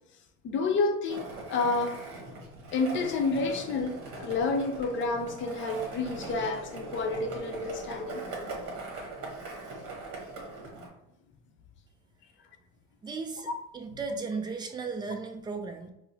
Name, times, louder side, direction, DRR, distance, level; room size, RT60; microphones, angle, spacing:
voice 1, 0.4-2.0 2.7-8.2 13.5-13.6, left 3 dB, 40° left, 4 dB, 0.6 m, -29 dB
Skateboard, 1.1-10.9, right 3 dB, 50° right, 1.2 m, -41 dB
voice 2, 13.0-13.5 13.7-15.9, right 4 dB, 15° right, 4 dB, 0.4 m, -35 dB
4.5 x 2.0 x 2.7 m, 0.87 s
cardioid pair, 130°, 30 cm